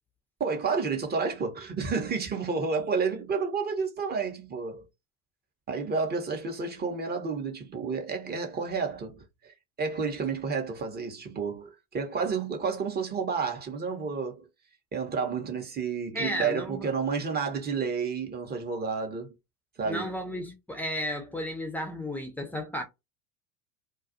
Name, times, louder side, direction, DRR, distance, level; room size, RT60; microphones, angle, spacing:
voice 1, 0.4-4.9 5.7-9.5 9.8-14.4 14.9-19.3 19.8-20.1, right 5 dB, 20° right, 0.8 m, -30 dB
voice 2, 16.1-16.8 19.8-22.8, equal, 5° left, 0.5 m, -33 dB
2.3 x 2.2 x 2.5 m
hypercardioid pair, 85°, 45 cm